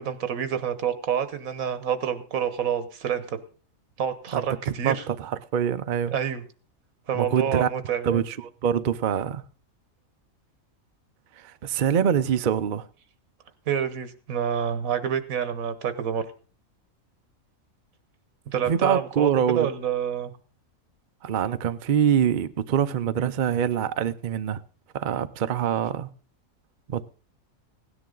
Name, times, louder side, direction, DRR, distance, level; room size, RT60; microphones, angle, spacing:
voice 1, 0.0-3.4 4.0-5.0 6.1-6.4 7.1-8.2 13.7-16.2 18.5-20.3, right 8 dB, 85° right, 1.5 m, -27 dB
voice 2, 4.3-6.1 7.1-7.7 8.0-9.4 11.4-12.9 18.6-19.7 21.2-24.6 24.9-26.1 26.9-27.1, right 8 dB, 50° right, 0.6 m, -25 dB
16.5 x 9.9 x 3.8 m
omnidirectional pair, 1.4 m